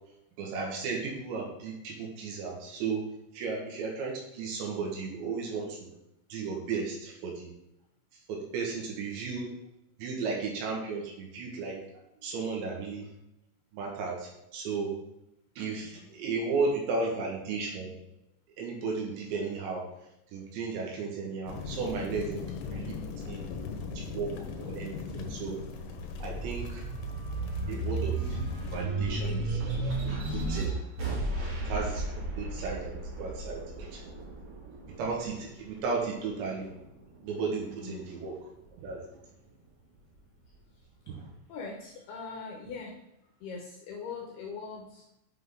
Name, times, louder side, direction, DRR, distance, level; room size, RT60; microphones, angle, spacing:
voice 1, 0.4-5.9 6.3-7.5 8.3-9.5 10.0-11.8 12.2-13.1 13.7-15.0 15.6-17.9 18.6-19.9 20.3-22.5 22.7-23.5 24.0-25.6 26.2-26.9 27.7-28.4 28.7-29.6 30.1-30.7 31.7-32.0 32.4-34.0 34.9-36.7 37.2-38.4 38.8-39.1 41.1-41.3, right 4 dB, 70° right, -1 dB, 3.6 m, -34 dB
sound 1, 21.5-28.9, left 5 dB, 90° left, 3.5 m, -40 dB
sound 2, 25.4-36.2 36.7-37.9, right 2 dB, 45° right, 2.0 m, -34 dB
voice 2, 41.5-43.0 43.4-45.2, left 4 dB, 75° left, 0 dB, 2.5 m, -41 dB
8.4 x 6.0 x 3.8 m, 0.85 s
omnidirectional pair, 5.6 m